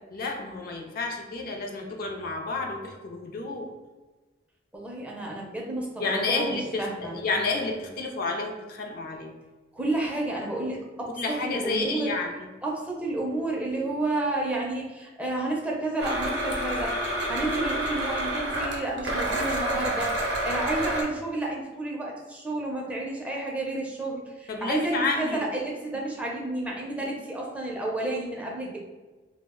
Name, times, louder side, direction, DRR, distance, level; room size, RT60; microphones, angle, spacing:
voice 1, 0.1-3.7 6.0-9.3 11.2-12.5 24.5-25.5, left 3 dB, 50° left, 2 dB, 0.4 m, -30 dB
voice 2, 4.7-7.1 9.7-11.1 11.4-12.1 12.6-17.0 17.3-28.8, right 2 dB, 5° right, -3 dB, 0.4 m, -31 dB
Domestic sounds home sounds, 16.0-21.0, right 1 dB, 70° right, 0.6 m, -29 dB
2.3 x 2.0 x 3.5 m, 1.2 s
head